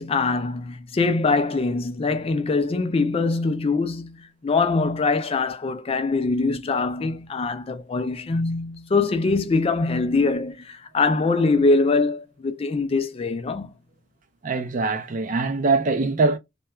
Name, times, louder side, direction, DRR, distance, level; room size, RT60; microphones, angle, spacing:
voice 1, 0.0-13.7, left 3 dB, 30° left, 0.3 m, -23 dB
voice 2, 14.4-16.4, right 3 dB, 40° right, 0.4 m, -22 dB
2.3 x 2.2 x 2.9 m
head